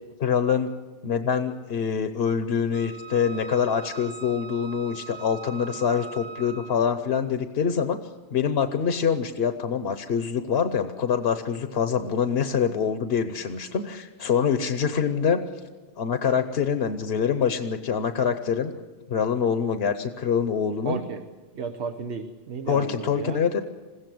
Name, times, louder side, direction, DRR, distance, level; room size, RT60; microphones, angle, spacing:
voice 1, 0.2-0.7 1.0-8.0 8.3-15.4 16.0-18.7 19.1-21.0 22.7-23.6, left 7 dB, 70° left, 8 dB, 1.1 m, -25 dB
Wind instrument woodwind instrument, 2.7-6.9, right 6 dB, 55° right, 1.5 m, -41 dB
voice 2, 20.8-21.2 21.5-23.4, right 5 dB, 85° right, 8 dB, 1.2 m, -33 dB
21.0 x 16.0 x 7.8 m, 1.3 s
omnidirectional pair, 1.1 m